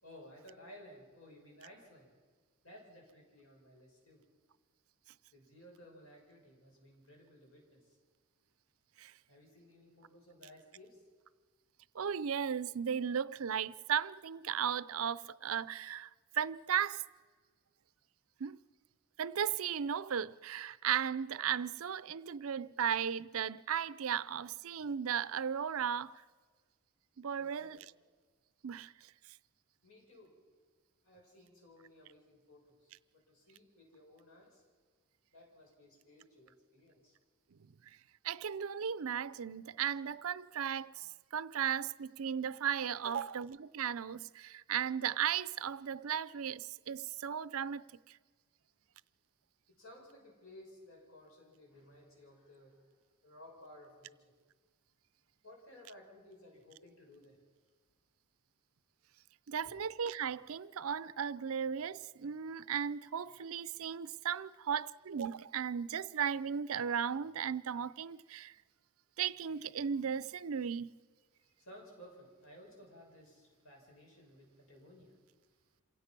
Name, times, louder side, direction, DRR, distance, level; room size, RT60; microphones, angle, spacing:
voice 1, 0.0-2.1 2.6-4.2 5.3-8.0 9.3-11.0 27.3-27.9 29.8-30.3 31.0-34.6 35.3-37.2 49.8-52.9 53.2-54.3 55.4-57.4 59.6-59.7 71.4-75.2, left 1 dB, 70° left, 6.6 m, -57 dB
voice 2, 11.9-16.1 16.3-17.0 18.4-18.6 19.2-26.1 27.2-27.8 28.6-28.9 38.2-47.8 59.5-68.5 69.2-70.9, right 8 dB, 75° right, 0.5 m, -36 dB
27.5 x 16.5 x 6.0 m
head